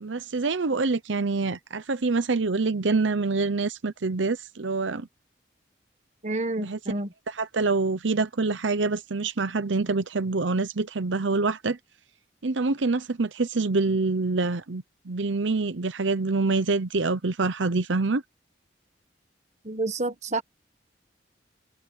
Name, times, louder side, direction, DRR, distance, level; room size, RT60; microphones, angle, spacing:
voice 1, 0.0-5.1 6.6-6.8 7.3-11.8 12.4-18.2, right 3 dB, 90° right, 0.9 m, -26 dB
voice 2, 6.2-7.1 19.6-20.4, right 2 dB, 40° right, 1.5 m, -29 dB
head